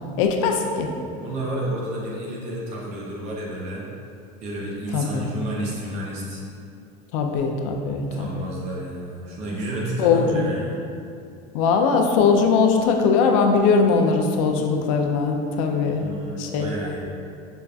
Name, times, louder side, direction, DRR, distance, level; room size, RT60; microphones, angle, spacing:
voice 1, 0.2-0.9 4.9-5.3 7.1-8.5 10.0-10.5 11.5-16.0 16.4-16.7, left 5 dB, 75° left, 3 dB, 0.4 m, -20 dB
voice 2, 1.1-3.9 4.4-6.4 8.1-10.8 15.8-17.0, right 1 dB, 40° right, -4 dB, 0.6 m, -31 dB
5.1 x 2.3 x 2.3 m, 2.5 s
cardioid pair, 165°, 17 cm